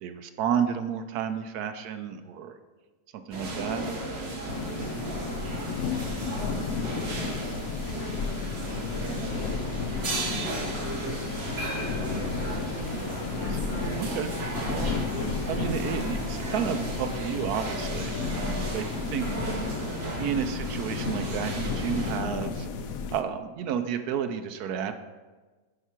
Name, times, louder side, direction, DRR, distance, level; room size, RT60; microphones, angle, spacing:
voice 1, 0.0-2.5 3.1-3.8 13.4-14.3 14.6-19.4 20.2-22.7 23.1-24.9, right 8 dB, 75° right, 9 dB, 1.0 m, -32 dB
sound 1, 3.3-22.2, right 2 dB, 40° right, 1.3 m, -34 dB
sound 2, 4.5-23.2, left 5 dB, 65° left, 1.0 m, -33 dB
voice 2, 5.8-7.6 7.9-9.6 10.0-11.0, left 5 dB, 85° left, 1 dB, 1.7 m, -42 dB
10.0 x 4.6 x 4.4 m, 1.3 s
omnidirectional pair, 1.8 m